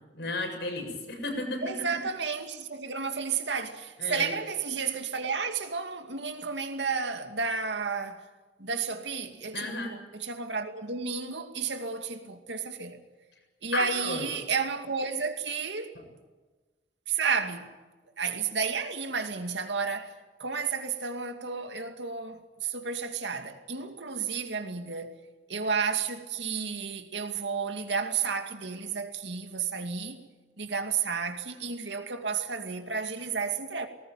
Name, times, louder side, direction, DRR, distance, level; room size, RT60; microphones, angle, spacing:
voice 1, 0.1-1.6 4.0-4.3 9.5-9.9 13.7-14.3, left 2 dB, 70° left, 7.6 m, -33 dB
voice 2, 1.6-8.3 8.6-13.0 13.6-16.0 17.1-17.7 18.2-25.2 25.5-30.2 30.6-33.9, right 5 dB, 75° right, 2.4 m, -32 dB
19.5 x 19.5 x 9.3 m
head